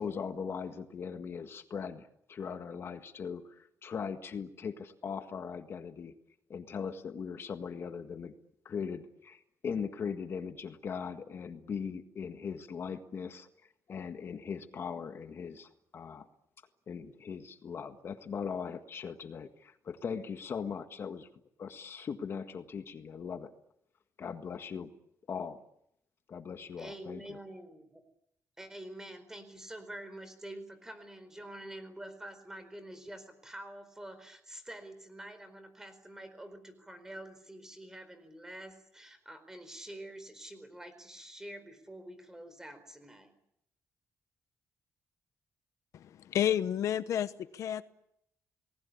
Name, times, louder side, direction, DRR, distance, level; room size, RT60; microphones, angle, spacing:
voice 1, 0.0-6.1 6.5-8.3 8.7-13.5 13.9-16.3 16.9-21.3 21.6-23.5 24.2-24.9 25.3-25.6 26.3-27.4, left 6 dB, 50° left, 8 dB, 1.7 m, -39 dB
voice 2, 26.8-28.0 28.6-43.3, right 1 dB, 10° right, 11 dB, 4.5 m, -47 dB
voice 3, 45.9-47.8, left 10 dB, 75° left, 13 dB, 1.1 m, -31 dB
30.0 x 20.0 x 8.6 m, 0.77 s
cardioid pair, 135°, 5 cm